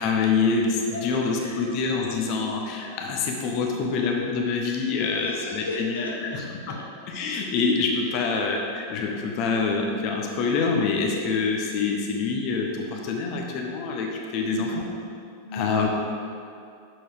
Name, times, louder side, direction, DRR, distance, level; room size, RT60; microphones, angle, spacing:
voice 1, 0.0-6.4 6.7-6.8 7.1-14.8 15.5-15.9, left 4 dB, 40° left, 1 dB, 0.9 m, -26 dB
voice 2, 0.9-1.7 5.0-6.4 6.7-6.8 8.1-8.2 14.4-15.0 15.4-15.9, left 2 dB, 75° left, -2 dB, 0.7 m, -36 dB
6.7 x 4.5 x 4.9 m, 2.4 s
figure-of-eight pair, 90°, 0 cm